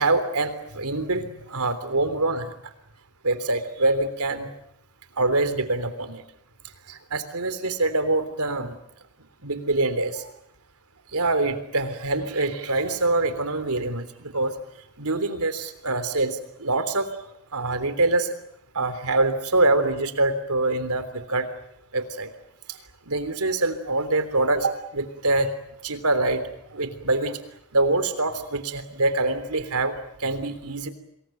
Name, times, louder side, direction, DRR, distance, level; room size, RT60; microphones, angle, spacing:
voice 1, 0.0-2.5 3.2-4.5 5.2-6.2 6.9-8.8 9.4-10.3 11.1-14.5 15.0-17.1 17.5-18.3 18.8-21.5 21.9-22.3 22.7-22.8 23.1-25.5 25.8-26.4 26.7-27.4 27.7-30.9, right 2 dB, 85° right, 10 dB, 3.5 m, -25 dB
27.0 x 22.0 x 9.1 m, 0.77 s
head